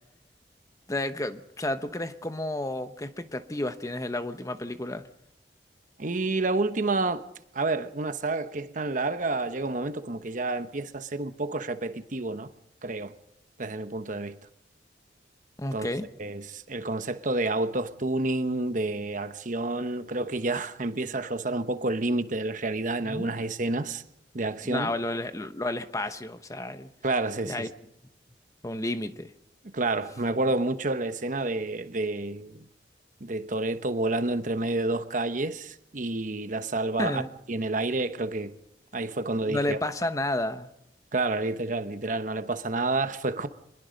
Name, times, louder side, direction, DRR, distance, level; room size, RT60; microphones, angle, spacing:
voice 1, 0.9-5.1 15.6-16.1 23.0-23.3 24.6-26.9 27.4-27.7 28.6-29.3 37.0-37.3 39.5-40.7, left 1 dB, 20° left, 1.0 m, -31 dB
voice 2, 6.0-7.2 7.5-12.5 12.8-13.1 13.6-14.3 15.7-15.9 16.2-24.0 24.3-24.9 27.0-27.7 29.7-32.6 33.2-37.2 37.5-38.5 38.9-39.8 41.1-43.5, right 2 dB, 45° right, 1.1 m, -29 dB
25.0 x 21.5 x 5.2 m
head